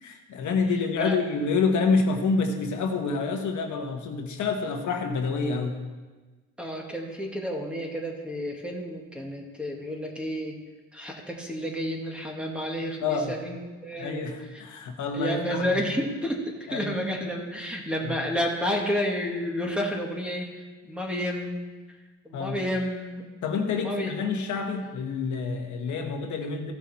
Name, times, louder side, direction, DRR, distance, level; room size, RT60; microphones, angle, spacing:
voice 1, 0.0-5.8 13.0-13.3 14.0-15.8 16.7-16.9 18.0-18.1 22.3-22.6 23.4-26.7, left 4 dB, 75° left, 3 dB, 1.4 m, -27 dB
voice 2, 0.7-1.2 6.6-10.6 10.9-14.6 15.1-21.7 22.2-23.2 23.8-24.1, equal, 5° right, 0 dB, 2.0 m, -31 dB
15.5 x 6.2 x 4.3 m, 1.3 s
cardioid pair, 90°, 30 cm